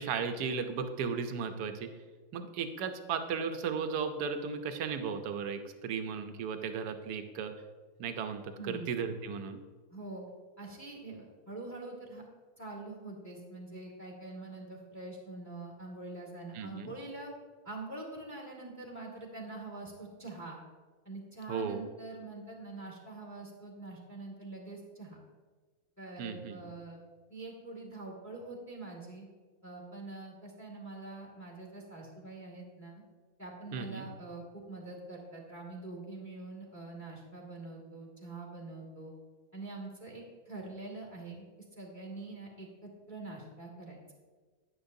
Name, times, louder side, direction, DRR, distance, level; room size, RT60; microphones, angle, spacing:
voice 1, 0.0-1.9 2.3-7.5 8.0-9.6 16.5-16.9 21.5-21.8 26.2-26.6 33.7-34.1, right 6 dB, 80° right, 7 dB, 1.3 m, -35 dB
voice 2, 8.6-8.9 9.9-10.2 10.6-12.2 12.6-17.3 17.6-20.6 21.0-25.2 26.0-27.0 27.3-29.3 29.6-33.0 33.4-39.1 39.5-41.4 41.8-44.0, right 2 dB, 10° left, 0 dB, 2.0 m, -45 dB
10.0 x 9.8 x 2.6 m, 1.4 s
omnidirectional pair, 1.7 m